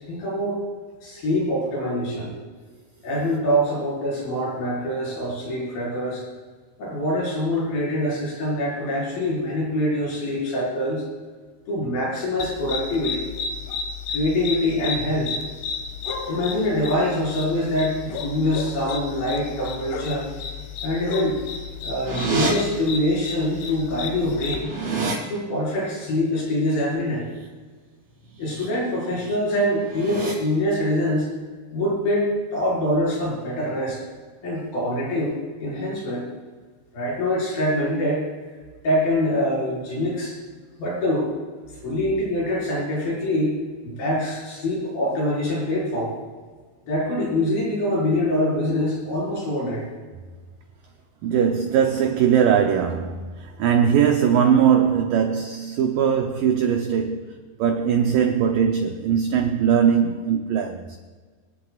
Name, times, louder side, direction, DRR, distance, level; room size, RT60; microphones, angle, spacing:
voice 1, 0.1-0.6 1.0-2.3 3.0-6.2 6.8-11.0 11.7-13.2 14.1-15.4 16.3-20.3 20.8-21.4 21.8-24.7 25.2-27.3 28.4-31.3 31.7-34.0 34.4-36.2 36.9-38.3 38.8-40.4 40.8-41.3 41.8-46.1 46.8-49.8, left 1 dB, 55° left, 6.7 m, -24 dB
sound 1, 12.4-24.6, left 5 dB, 75° left, 3.2 m, -33 dB
sound 2, 22.1-22.5 23.7-23.8 24.1-25.2 28.3-28.7 29.1-29.4 29.8-30.3, right 4 dB, 60° right, 6.6 m, -28 dB
voice 2, 51.2-57.3 57.6-61.0, right 8 dB, 85° right, 1.9 m, -20 dB
25.5 x 10.5 x 2.4 m
omnidirectional pair, 5.0 m